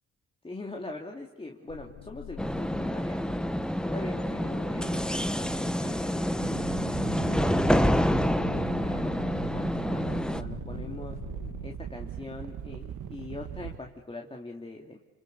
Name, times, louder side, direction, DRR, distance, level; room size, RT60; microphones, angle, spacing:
voice 1, 0.4-3.2 3.8-6.7 7.2-11.2 11.6-15.0, left 2 dB, 20° left, 1 dB, 2.8 m, -42 dB
sound 1, 1.7-11.8, left 11 dB, 90° left, 1.1 m, -45 dB
sound 2, 2.4-10.4, equal, 5° left, 1.2 m, -28 dB
sound 3, 6.4-13.8, right 9 dB, 80° right, 2.2 m, -39 dB
29.0 x 28.0 x 7.0 m, 1.0 s
cardioid pair, 90°, 30 cm